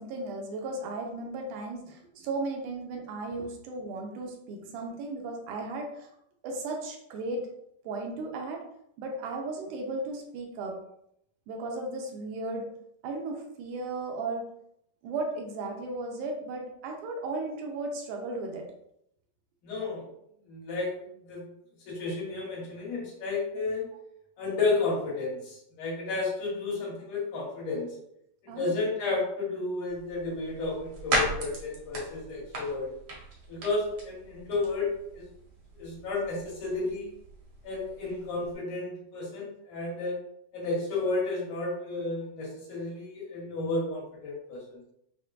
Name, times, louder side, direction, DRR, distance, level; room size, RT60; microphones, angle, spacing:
voice 1, 0.0-6.1 6.4-7.5 7.9-8.6 9.0-10.8 11.5-12.7 13.0-14.5 15.0-18.7 28.5-28.8, right 2 dB, 85° right, 1 dB, 2.1 m, -35 dB
voice 2, 19.6-20.0 20.5-20.9 21.2-21.5 21.9-23.9 24.4-28.0 28.5-32.9 33.5-35.3 35.8-37.1 37.6-40.2 40.5-44.8, left 3 dB, 75° left, -5 dB, 2.8 m, -32 dB
sound 1, 29.9-38.5, right 1 dB, 65° right, 1.3 m, -37 dB
6.4 x 2.1 x 2.5 m, 0.75 s
omnidirectional pair, 3.6 m